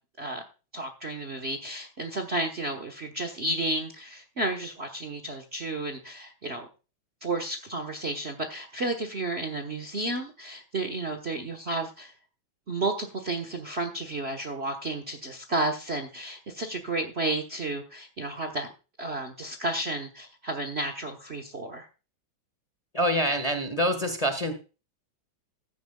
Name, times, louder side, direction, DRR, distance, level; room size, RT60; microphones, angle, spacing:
voice 1, 0.7-6.7 7.2-12.1 12.7-18.7 19.0-21.9, right 2 dB, 35° right, 6 dB, 1.2 m, -32 dB
voice 2, 22.9-24.5, equal, 20° left, 7 dB, 1.5 m, -26 dB
15.0 x 10.5 x 2.3 m, 0.32 s
omnidirectional pair, 2.2 m